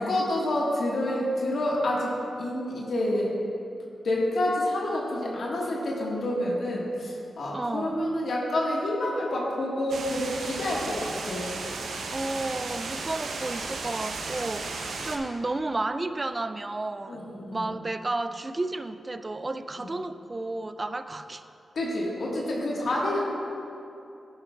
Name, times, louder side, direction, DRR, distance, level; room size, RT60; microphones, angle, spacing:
voice 1, 0.0-3.3 4.0-11.6 17.1-17.7 19.8-19.9 21.7-23.3, left 1 dB, 70° left, -4 dB, 1.5 m, -28 dB
voice 2, 7.5-8.1 12.1-17.2 17.5-21.4, right 2 dB, 30° right, 11 dB, 0.4 m, -32 dB
sound 1, 9.9-15.2, right 3 dB, 85° right, 0.7 m, -35 dB
11.0 x 10.0 x 2.3 m, 2.7 s
cardioid pair, 65°, 0 cm